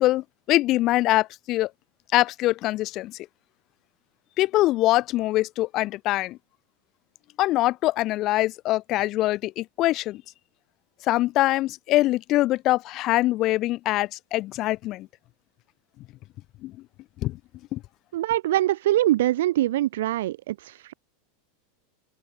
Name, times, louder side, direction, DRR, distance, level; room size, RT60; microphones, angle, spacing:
voice 1, 0.0-1.7 2.1-3.2 4.4-6.4 7.4-10.2 11.1-15.1 16.6-16.7 17.2-17.4 17.7-17.8, left 17 dB, 30° left, 2.3 m, -23 dB
voice 2, 18.1-20.9, right 14 dB, 75° right, 3.0 m, -23 dB
supercardioid pair, 170°, 0 cm